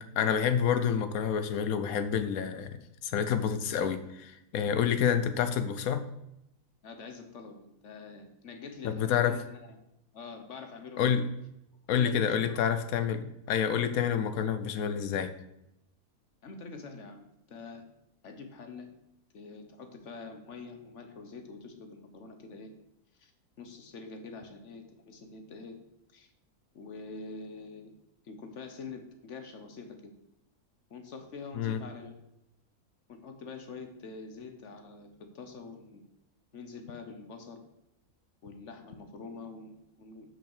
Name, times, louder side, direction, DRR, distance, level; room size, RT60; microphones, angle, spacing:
voice 1, 0.0-2.8 3.0-6.0 8.8-9.4 11.0-11.2 11.9-15.3 31.5-31.8, left 8 dB, 80° left, 10 dB, 1.2 m, -28 dB
voice 2, 6.8-9.7 10.1-11.3 11.9-12.6 16.4-17.8 18.2-18.9 19.3-22.7 23.2-23.3 23.6-25.8 26.1-26.3 26.7-27.9 28.2-30.1 30.9-32.1 33.1-36.1 36.5-37.6 38.4-40.3, left 4 dB, 60° left, 6 dB, 1.4 m, -45 dB
6.1 x 5.7 x 6.6 m, 0.82 s
omnidirectional pair, 1.5 m